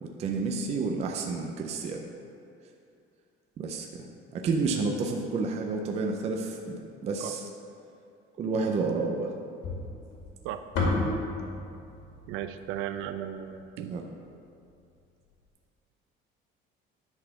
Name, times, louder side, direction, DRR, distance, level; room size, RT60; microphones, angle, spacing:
voice 1, 0.0-2.1 3.6-7.5 8.4-9.3 13.9-14.0, right 4 dB, 30° right, 2 dB, 0.5 m, -30 dB
sound 1, 9.6-13.9, left 2 dB, 70° left, 2.2 m, -32 dB
voice 2, 12.3-14.0, right 10 dB, 80° right, 9 dB, 0.5 m, -35 dB
10.5 x 4.1 x 5.8 m, 2.5 s
cardioid pair, 180°, 20 cm